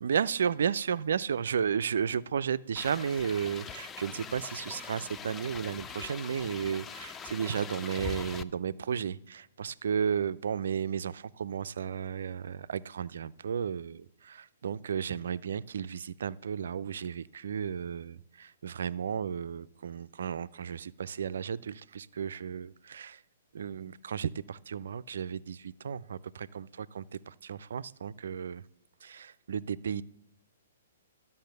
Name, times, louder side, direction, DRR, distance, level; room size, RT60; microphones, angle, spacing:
voice 1, 0.0-23.2 23.5-28.6 29.0-30.0, right 7 dB, 65° right, 16 dB, 0.4 m, -33 dB
sound 1, 2.8-8.4, left 7 dB, 15° left, 0.4 m, -42 dB
12.0 x 5.5 x 6.6 m, 0.87 s
figure-of-eight pair, 120°, 0 cm